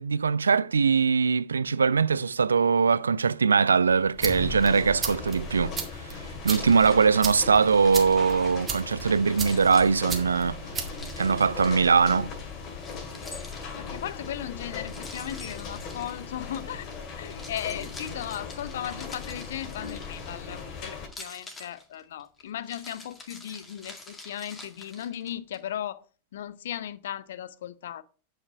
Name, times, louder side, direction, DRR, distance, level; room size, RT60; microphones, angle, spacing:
voice 1, 0.0-5.7 6.4-10.6 11.2-12.3, right 5 dB, 75° right, 0.3 m, -22 dB
sound 1, 3.9-12.0, right 6 dB, 20° right, 1.9 m, -37 dB
sound 2, 4.2-21.1, left 5 dB, 35° left, 2.2 m, -39 dB
Keys jangling, 6.5-8.9 9.3-12.0 12.8-14.0 14.9-16.7 17.2-20.5 21.0-25.6, left 2 dB, 15° left, 2.1 m, -47 dB
voice 2, 13.7-16.9 17.2-26.0 26.3-28.0, left 10 dB, 60° left, 0.6 m, -36 dB
9.4 x 5.7 x 4.9 m
figure-of-eight pair, 90°, 0 cm